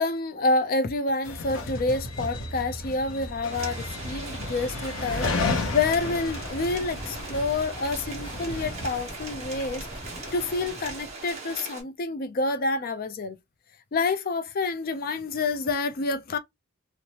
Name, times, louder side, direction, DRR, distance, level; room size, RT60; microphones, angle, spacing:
voice 1, 0.0-5.3 5.7-9.9 10.3-13.4 13.9-16.4, left 3 dB, 45° left, 0.4 m, -28 dB
sound 1, 1.2-8.9, left 3 dB, 75° left, 0.8 m, -33 dB
sound 2, 3.5-11.8, right 3 dB, 35° right, 1.0 m, -40 dB
sound 3, 4.9-11.6, equal, 25° left, 0.9 m, -42 dB
3.1 x 2.1 x 2.8 m
head